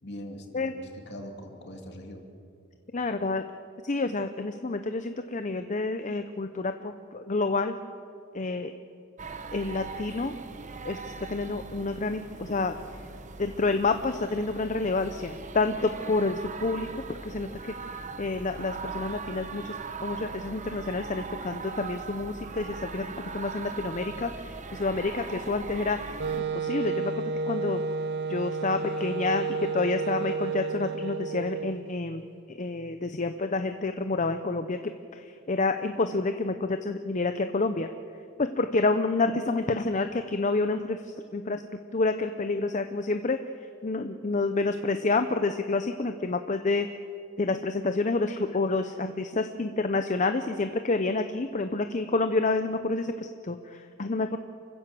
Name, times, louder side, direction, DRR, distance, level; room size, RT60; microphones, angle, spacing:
voice 1, 0.0-2.3, equal, 55° left, 3 dB, 2.8 m, -42 dB
voice 2, 2.9-3.4 3.8-7.7 8.3-8.7 9.5-10.3 10.8-12.8 13.4-19.7 20.0-23.1 23.3-24.3 24.7-26.0 26.3-27.8 28.3-29.5 29.7-32.2 32.6-34.8 35.1-35.2 35.5-37.9 38.4-41.0 41.3-41.6 41.9-43.4 43.8-46.9 47.4-54.4, left 3 dB, 35° left, 8 dB, 0.7 m, -28 dB
sound 1, 9.2-26.4, right 4 dB, 35° right, 1.0 m, -40 dB
Wind instrument woodwind instrument, 26.2-31.9, right 4 dB, 55° right, 0.7 m, -31 dB
28.5 x 15.5 x 7.6 m, 2.5 s
head